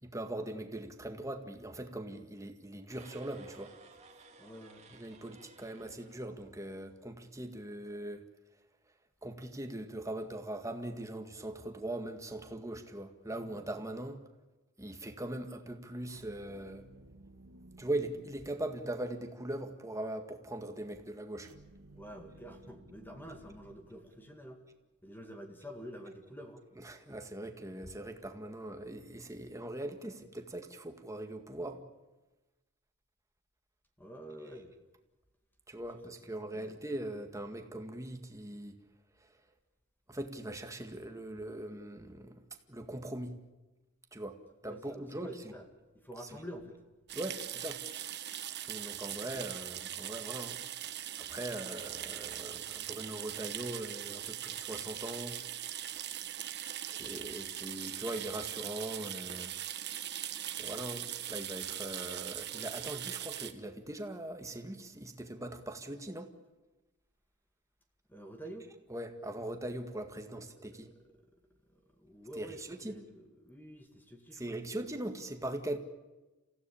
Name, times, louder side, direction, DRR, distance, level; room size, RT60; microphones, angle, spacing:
voice 1, 0.0-3.7 4.9-8.2 9.2-14.2 14.8-16.9 17.8-21.5 26.8-31.8 35.7-38.8 40.1-43.4 44.1-45.5 46.2-46.4 47.1-47.8 48.7-50.6 51.2-55.4 55.9-56.2 56.9-59.5 60.6-66.3 68.9-70.9 72.4-73.0 74.3-75.8, right 1 dB, 15° right, 6 dB, 1.9 m, -41 dB
sound 1, 2.8-7.0, right 3 dB, 30° right, 2.4 m, -57 dB
voice 2, 4.4-4.8 21.9-24.6 25.0-26.6 34.0-34.7 36.5-36.8 44.6-45.7 45.9-46.8 49.1-49.3 68.1-68.7 70.6-71.2 71.7-74.4, equal, 10° left, 4 dB, 2.1 m, -48 dB
sound 2, 16.1-19.4 21.4-24.7, right 1 dB, 80° right, 1.7 m, -57 dB
sound 3, 47.1-63.5, right 11 dB, 50° right, 1.3 m, -40 dB
27.5 x 16.0 x 8.6 m, 1.1 s
head